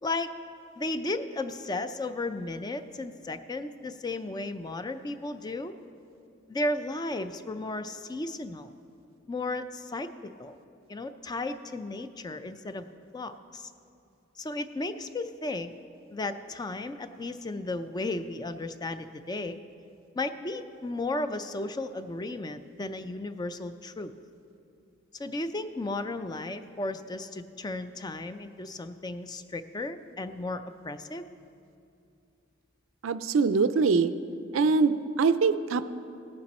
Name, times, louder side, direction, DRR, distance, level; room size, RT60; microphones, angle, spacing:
voice 1, 0.0-0.3 0.8-5.8 6.5-8.7 9.3-10.1 10.4-10.6 10.9-12.9 13.1-13.7 14.4-15.7 16.1-19.6 20.2-24.1 25.2-31.2, left 2 dB, 20° left, 10 dB, 0.4 m, -34 dB
voice 2, 33.0-34.1 34.5-35.9, right 4 dB, 75° right, 13 dB, 0.4 m, -23 dB
17.0 x 8.7 x 4.2 m, 2.5 s
head